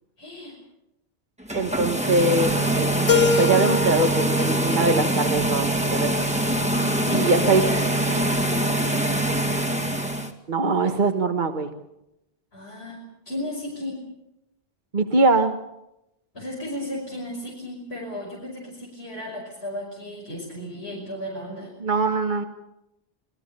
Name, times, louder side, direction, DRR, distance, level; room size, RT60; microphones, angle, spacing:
voice 1, 0.2-0.6 7.0-9.8 12.5-14.0 16.3-21.7, left 1 dB, 80° left, -3 dB, 5.9 m, -35 dB
sound 1, 1.4-10.3, right 1 dB, 5° right, 2.0 m, -24 dB
voice 2, 1.5-6.1 7.1-7.6 10.5-11.7 14.9-15.5 21.8-22.4, right 3 dB, 50° right, 6 dB, 1.6 m, -22 dB
Keyboard (musical), 3.1-6.0, left 4 dB, 35° left, 2.9 m, -25 dB
28.0 x 20.0 x 6.8 m, 0.87 s
omnidirectional pair, 1.0 m